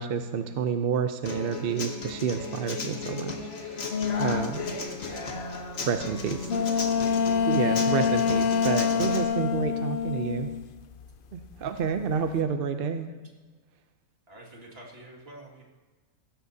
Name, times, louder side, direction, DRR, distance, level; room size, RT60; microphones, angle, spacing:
voice 1, 0.0-3.4 3.7-3.9 4.2-4.7 5.8-6.8 7.5-10.5 11.3-13.1, right 6 dB, 55° right, 8 dB, 0.6 m, -29 dB
Human voice / Acoustic guitar, 1.2-9.2, left 3 dB, 45° left, 1.3 m, -35 dB
sound 1, 3.9-4.5 6.5-11.1 11.4-12.2, left 7 dB, 75° left, 0.5 m, -26 dB
voice 2, 6.4-6.9 13.0-13.2 14.3-15.6, right 1 dB, 40° right, -1 dB, 2.3 m, -48 dB
16.0 x 13.0 x 2.8 m, 1.3 s
omnidirectional pair, 1.5 m